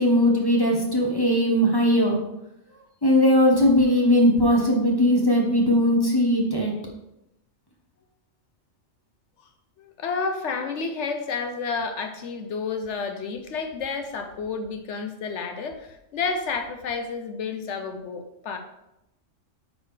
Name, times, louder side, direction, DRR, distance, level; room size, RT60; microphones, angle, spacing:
voice 1, 0.0-2.2 3.0-6.7, equal, 20° left, 0 dB, 0.9 m, -19 dB
voice 2, 9.8-18.6, left 5 dB, 65° left, 7 dB, 0.9 m, -30 dB
9.3 x 4.1 x 3.2 m, 0.87 s
omnidirectional pair, 1.4 m